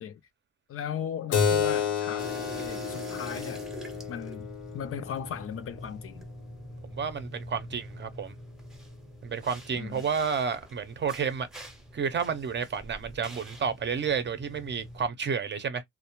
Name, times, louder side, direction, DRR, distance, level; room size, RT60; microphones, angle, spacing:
voice 1, 0.7-3.7 4.1-4.5 4.7-6.3 9.7-10.0, left 8 dB, 50° left, 0.4 m, -37 dB
Keyboard (musical), 1.3-6.4, left 7 dB, 90° left, 0.8 m, -31 dB
sound 1, 2.2-15.1, right 1 dB, ahead, 0.7 m, -45 dB
voice 2, 6.9-8.3 9.2-11.5 11.9-15.8, right 6 dB, 40° right, 0.6 m, -31 dB
2.3 x 2.0 x 2.9 m
cardioid pair, 90°, 30 cm